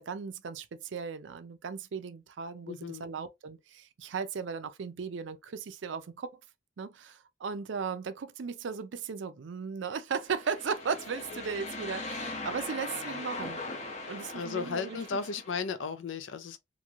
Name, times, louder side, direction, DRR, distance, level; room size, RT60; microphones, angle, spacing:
voice 1, 0.0-6.3 6.8-13.6 14.1-15.2, right 5 dB, 75° right, 0.4 m, -36 dB
voice 2, 2.7-3.1 14.3-16.6, left 5 dB, 80° left, 0.5 m, -35 dB
sound 1, 10.2-15.7, left 2 dB, 35° left, 0.7 m, -40 dB
3.0 x 2.5 x 2.4 m
head